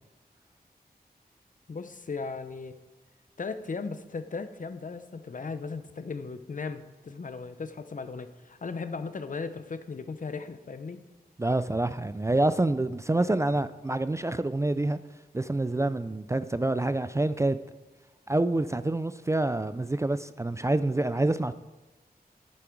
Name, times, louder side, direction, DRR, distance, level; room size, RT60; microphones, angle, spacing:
voice 1, 1.7-2.8 3.4-11.0, left 4 dB, 55° left, 10 dB, 0.7 m, -37 dB
voice 2, 11.4-15.0 15.3-17.6 18.3-21.5, right 2 dB, 20° right, 12 dB, 0.3 m, -27 dB
11.0 x 8.6 x 4.6 m, 1.2 s
wide cardioid pair, 105°, 16 cm